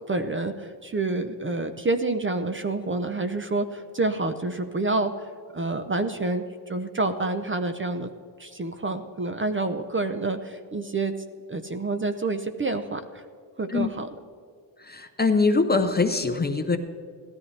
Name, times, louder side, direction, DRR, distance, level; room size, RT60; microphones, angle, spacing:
voice 1, 0.1-8.1 8.4-11.1 11.5-13.2 13.6-14.1, right 2 dB, 25° right, 8 dB, 0.6 m, -28 dB
voice 2, 14.8-16.8, left 3 dB, 20° left, 7 dB, 0.6 m, -23 dB
17.0 x 13.5 x 3.3 m, 2.1 s
wide cardioid pair, 135°, 50 cm